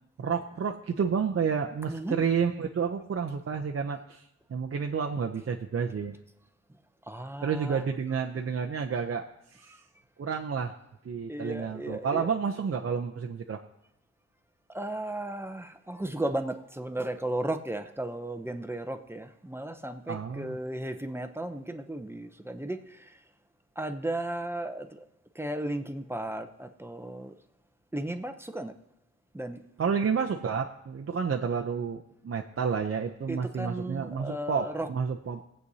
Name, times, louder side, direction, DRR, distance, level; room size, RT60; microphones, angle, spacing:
voice 1, 0.2-4.2 4.5-6.2 7.4-9.3 9.5-9.7 10.2-10.7 11.0-13.6 20.1-20.6 29.8-35.4, right 6 dB, 50° right, 2 dB, 0.6 m, -30 dB
voice 2, 1.9-2.2 7.1-7.8 9.7-9.8 11.3-12.3 14.7-23.2 23.8-25.0 25.4-27.4 27.9-28.8 29.3-29.6 33.3-34.9, right 1 dB, 10° right, 8 dB, 0.6 m, -35 dB
21.0 x 8.1 x 2.8 m, 0.80 s
wide cardioid pair, 110°, 29 cm